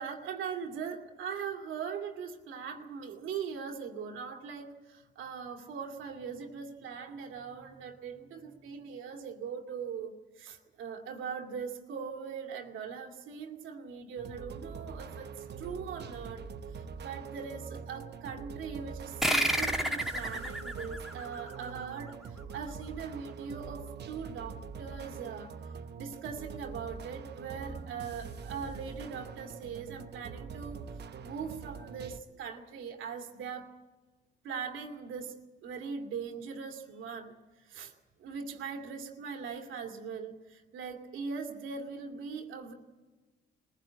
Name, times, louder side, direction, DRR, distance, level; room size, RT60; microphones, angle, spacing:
voice 1, 0.0-16.4 16.7-25.5 25.9-30.8 31.2-33.7 34.4-35.4 35.6-37.4 37.6-37.9 38.2-42.7, right 6 dB, 85° right, 3 dB, 2.3 m, -40 dB
sound 1, 14.2-32.2, right 5 dB, 60° right, 1.1 m, -44 dB
sound 2, 19.2-22.3, right 1 dB, ahead, 1.7 m, -31 dB
21.0 x 15.5 x 8.7 m, 1.3 s
cardioid pair, 90°, 20 cm